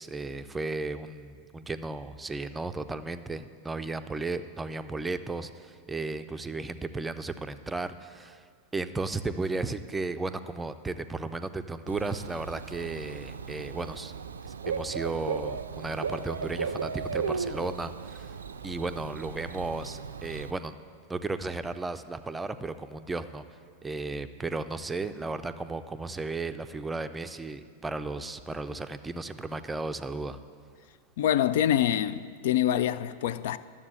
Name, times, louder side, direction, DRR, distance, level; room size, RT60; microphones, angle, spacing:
voice 1, 0.0-8.4 8.7-14.1 14.4-18.3 18.6-20.8 21.1-23.4 23.8-30.4, right 3 dB, 10° right, 0.5 m, -34 dB
Bird / Cricket, 11.9-20.5, right 5 dB, 70° right, 0.4 m, -36 dB
voice 2, 31.2-33.6, left 11 dB, 55° left, 0.3 m, -25 dB
12.0 x 7.2 x 7.8 m
figure-of-eight pair, 90°, 0 cm